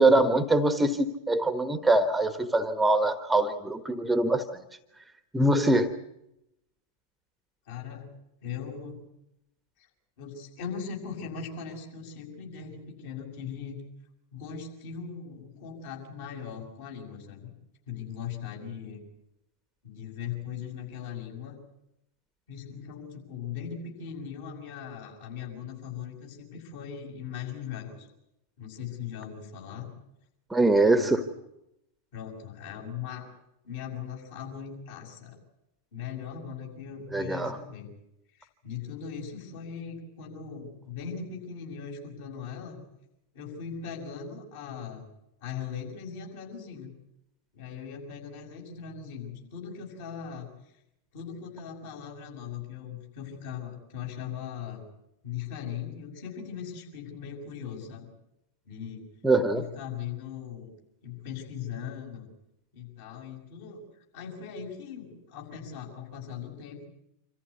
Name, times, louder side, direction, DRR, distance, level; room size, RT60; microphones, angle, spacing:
voice 1, 0.0-4.4 5.3-5.9 30.5-31.2 37.1-37.6 59.2-59.6, right 2 dB, 10° right, 11 dB, 1.3 m, -23 dB
voice 2, 7.7-8.1 8.4-9.0 9.8-9.9 10.2-13.8 14.3-17.5 17.9-19.0 19.8-21.6 22.5-28.1 28.6-29.9 30.8-31.1 32.1-33.3 33.6-35.4 35.9-37.9 38.3-42.8 43.3-45.0 45.4-46.9 47.5-50.7 51.1-54.8 55.2-58.1 58.6-59.0 59.5-60.7 61.0-62.3 62.7-63.8 64.1-66.8, left 7 dB, 55° left, 1 dB, 6.4 m, -39 dB
26.5 x 14.5 x 9.6 m, 0.85 s
figure-of-eight pair, 90°, 0 cm